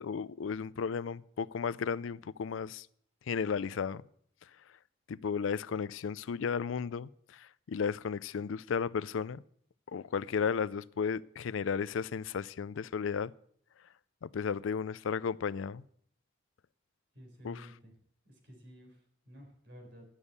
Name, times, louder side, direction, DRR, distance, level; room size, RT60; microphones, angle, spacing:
voice 1, 0.0-2.9 3.3-4.0 5.1-7.1 7.7-9.4 9.9-13.3 14.2-15.8 17.4-17.7, left 6 dB, 85° left, 0.4 m, -34 dB
voice 2, 17.1-17.9 18.2-20.1, equal, 60° right, 4.2 m, -53 dB
11.5 x 7.1 x 8.1 m
head